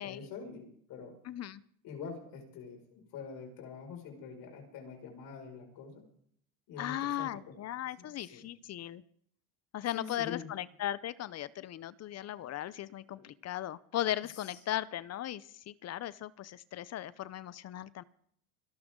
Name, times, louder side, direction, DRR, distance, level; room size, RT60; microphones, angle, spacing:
voice 1, 0.0-1.2 1.8-6.0 6.7-7.5 8.0-8.5 9.9-10.5 13.2-13.3 14.3-14.4, left 6 dB, 60° left, 2 dB, 5.8 m, -45 dB
voice 2, 1.3-1.6 6.8-9.0 9.7-18.0, left 12 dB, 40° left, 19 dB, 0.7 m, -37 dB
26.5 x 12.5 x 3.8 m, 0.63 s
supercardioid pair, 100°, 39 cm